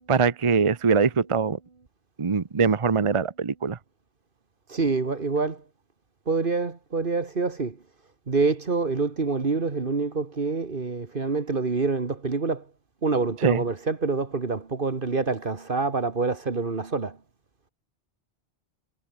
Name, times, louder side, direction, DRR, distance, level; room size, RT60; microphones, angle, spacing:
voice 1, 0.1-1.6 2.2-3.8 13.4-13.6, right 5 dB, 35° right, 0.8 m, -22 dB
voice 2, 4.7-5.6 6.3-7.8 8.3-12.6 13.0-17.2, right 4 dB, 55° right, 1.9 m, -26 dB
omnidirectional pair, 1.1 m